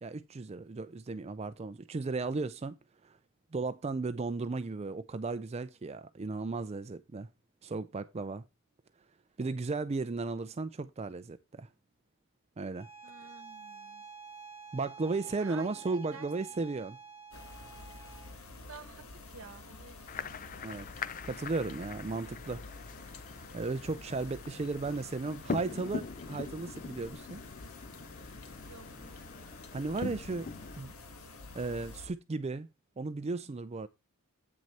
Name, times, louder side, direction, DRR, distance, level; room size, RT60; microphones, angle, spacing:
voice 1, 0.0-2.7 3.0-3.2 3.5-7.3 7.6-8.4 9.4-11.7 12.6-12.9 14.7-17.0 20.6-20.9 21.2-22.6 23.5-27.4 29.7-30.5 30.8-30.9 31.5-32.7 33.0-33.9, right 3 dB, 30° right, 0.4 m, -35 dB
Bowed string instrument, 12.7-18.4, right 5 dB, 10° right, 2.2 m, -49 dB
voice 2, 13.0-14.1 15.4-16.8 18.6-20.4 28.7-29.4, right 5 dB, 70° right, 1.1 m, -52 dB
sound 1, 17.3-32.1, left 3 dB, 80° left, 1.6 m, -49 dB
sound 2, 20.1-30.8, left 4 dB, 40° left, 0.5 m, -43 dB
8.9 x 6.2 x 4.2 m
head